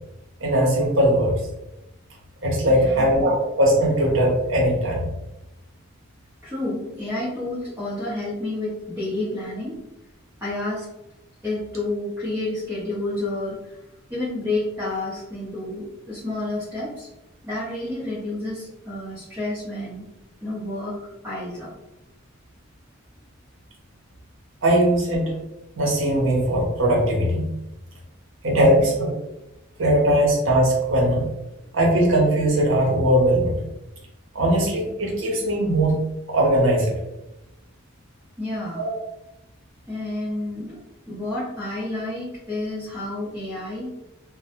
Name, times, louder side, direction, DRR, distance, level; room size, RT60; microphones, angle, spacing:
voice 1, 0.4-1.4 2.4-5.1 24.6-25.2 25.8-27.5 28.4-29.1 29.8-31.3 31.7-33.5 34.3-36.0 36.3-36.9 38.8-38.9, right 1 dB, 60° right, -3 dB, 0.7 m, -20 dB
voice 2, 2.7-3.1 6.4-9.8 10.4-10.9 11.4-13.8 14.1-17.1 17.4-20.0 20.4-21.7 28.5-28.9 38.4-38.8 39.9-40.8 41.1-43.9, left 2 dB, 10° right, -11 dB, 0.7 m, -30 dB
2.1 x 2.0 x 2.9 m, 0.94 s
head